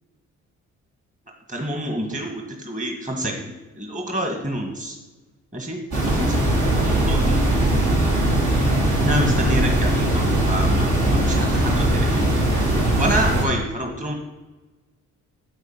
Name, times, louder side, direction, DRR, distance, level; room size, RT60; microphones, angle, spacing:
voice 1, 1.5-5.0 5.5-6.4 6.8-7.6 9.0-12.4 13.0-14.1, right 1 dB, 25° right, 1 dB, 1.9 m, -28 dB
sound 1, 5.9-13.4, right 1 dB, 75° right, 3.2 m, -20 dB
8.6 x 8.0 x 5.8 m, 1.2 s
cardioid pair, 90°, 30 cm